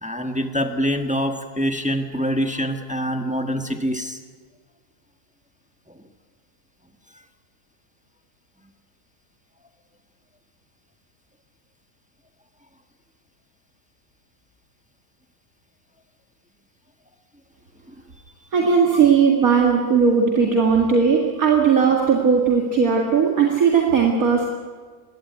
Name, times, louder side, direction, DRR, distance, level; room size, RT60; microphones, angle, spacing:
voice 1, 0.0-4.2 17.9-18.0, equal, 5° right, 5 dB, 1.3 m, -25 dB
voice 2, 18.5-24.5, right 6 dB, 60° right, 0 dB, 2.4 m, -17 dB
21.5 x 16.5 x 9.5 m, 1.5 s
omnidirectional pair, 1.7 m